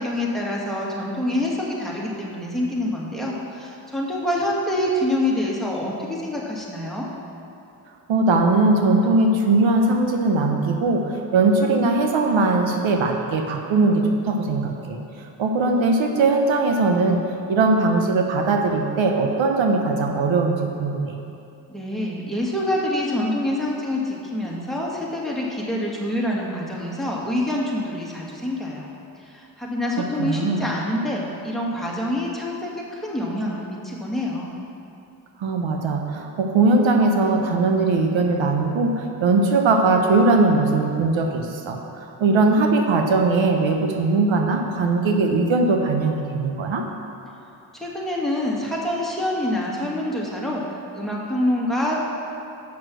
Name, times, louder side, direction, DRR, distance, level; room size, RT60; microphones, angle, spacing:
voice 1, 0.0-7.1 21.7-28.9 29.3-34.5 47.7-50.6 50.9-52.0, left 1 dB, ahead, -4 dB, 2.0 m, -26 dB
voice 2, 8.1-15.0 15.4-17.2 17.5-21.1 30.2-30.7 35.4-46.8, right 3 dB, 80° right, 2 dB, 0.9 m, -20 dB
7.3 x 6.1 x 6.2 m, 2.6 s
cardioid pair, 50°, 46 cm